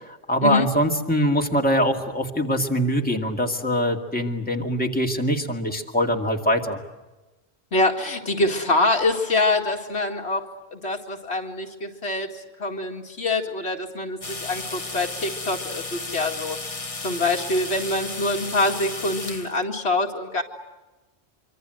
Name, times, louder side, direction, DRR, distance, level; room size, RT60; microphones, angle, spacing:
voice 1, 0.3-6.8, equal, 10° left, 2 dB, 2.2 m, -23 dB
voice 2, 7.7-20.4, left 2 dB, 75° left, 2 dB, 2.5 m, -25 dB
sound 1, 14.2-19.6, left 3 dB, 30° left, 1.5 m, -34 dB
25.5 x 25.0 x 7.8 m, 1.1 s
omnidirectional pair, 1.1 m